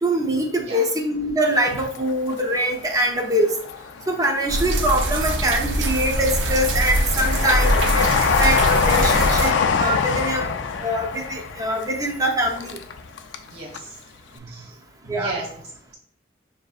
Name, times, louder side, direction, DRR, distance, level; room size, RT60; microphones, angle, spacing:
voice 1, 0.0-3.5 4.1-10.5 10.8-12.8 15.1-15.3, right 1 dB, 20° right, 2 dB, 0.5 m, -23 dB
Train, 1.5-2.8 3.2-4.2 4.7-13.5 13.7-13.8, left 6 dB, 85° left, 0.4 m, -24 dB
sound 1, 4.5-9.5, right 1 dB, 85° right, 0.5 m, -23 dB
voice 2, 13.5-14.0 14.5-14.8 15.1-16.0, right 2 dB, 60° right, -1 dB, 1.5 m, -35 dB
5.8 x 2.6 x 2.3 m, 0.63 s
head